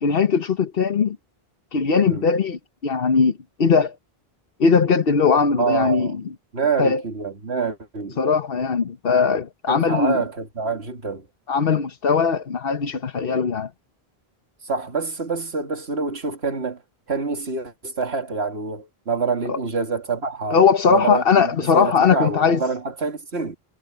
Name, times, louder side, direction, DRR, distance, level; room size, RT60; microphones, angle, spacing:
voice 1, 0.0-1.2 1.7-3.9 4.6-6.1 6.8-7.0 8.2-10.2 11.5-13.7 19.5-19.6 20.5-22.6, left 5 dB, 65° left, 1.3 m, -19 dB
voice 2, 5.6-6.1 6.5-8.2 9.7-11.3 14.6-16.8 17.1-20.6 20.9-23.6, right 4 dB, 80° right, 2.4 m, -26 dB
omnidirectional pair, 1.0 m